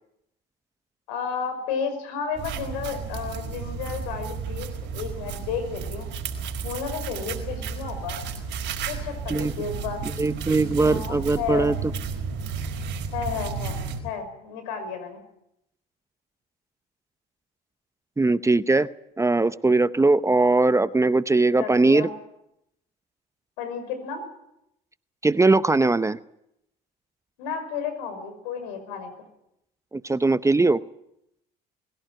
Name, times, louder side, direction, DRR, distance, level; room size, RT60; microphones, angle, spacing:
voice 1, 1.1-6.1 6.6-8.2 8.9-10.1 10.8-11.7 13.1-15.2 21.6-22.1 23.6-24.2 27.4-29.1, left 6 dB, 80° left, 9 dB, 5.8 m, -32 dB
sound 1, 2.3-14.0, right 5 dB, 65° right, 4.7 m, -33 dB
voice 2, 10.2-11.7 18.2-18.9 19.2-22.1 25.2-26.2 29.9-30.8, right 3 dB, 15° right, 15 dB, 0.7 m, -20 dB
21.5 x 16.5 x 9.2 m, 0.80 s
hypercardioid pair, 70°, 21 cm